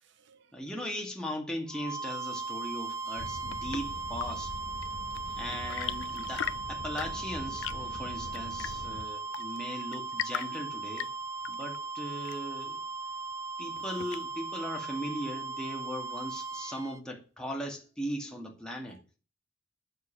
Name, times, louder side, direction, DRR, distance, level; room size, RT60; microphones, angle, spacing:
voice 1, 0.0-0.5 5.3-5.6 10.5-10.7 18.9-19.2, right 5 dB, 70° right, 0.7 m, -60 dB
voice 2, 0.5-4.5 5.4-11.1 11.5-12.8 13.6-19.0, equal, 5° left, 2.2 m, -38 dB
sound 1, 1.7-17.0, right 4 dB, 15° right, 0.5 m, -38 dB
Chirp tweet / Engine / Tap, 3.1-14.6, left 10 dB, 85° left, 0.4 m, -42 dB
sound 2, 3.2-9.1, left 1 dB, 45° left, 0.9 m, -44 dB
8.3 x 6.7 x 7.6 m
head